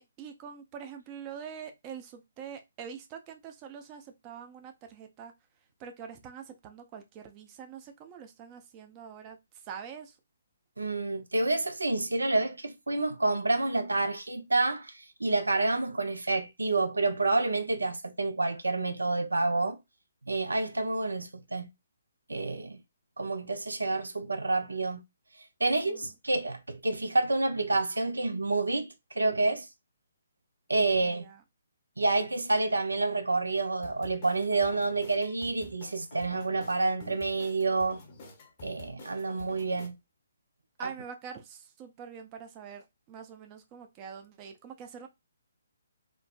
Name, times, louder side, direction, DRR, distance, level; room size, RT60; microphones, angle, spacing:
voice 1, 0.0-5.3 5.8-10.2 25.9-26.1 31.0-31.4 40.8-45.1, right 7 dB, 25° right, 0.5 m, -45 dB
voice 2, 10.8-19.8 20.3-21.7 22.3-22.8 23.2-25.0 25.6-29.7 30.7-31.3 32.0-38.0 38.6-40.0, right 2 dB, 85° right, 0.5 m, -28 dB
sound 1, 33.8-39.9, left 2 dB, 40° left, 0.8 m, -50 dB
3.1 x 2.0 x 2.4 m
figure-of-eight pair, 140°, 0 cm